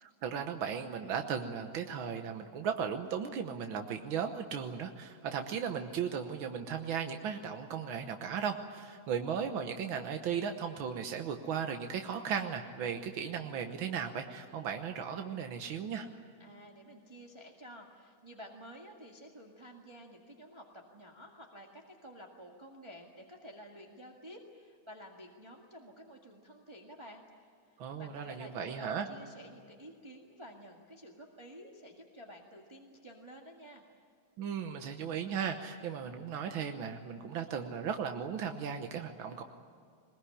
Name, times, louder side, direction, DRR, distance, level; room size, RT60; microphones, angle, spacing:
voice 1, 0.0-16.1 27.8-29.1 34.4-39.4, right 7 dB, 85° right, 5 dB, 1.9 m, -36 dB
voice 2, 16.4-33.8, equal, 15° right, -1 dB, 1.8 m, -51 dB
21.5 x 21.5 x 10.0 m, 2.2 s
omnidirectional pair, 2.1 m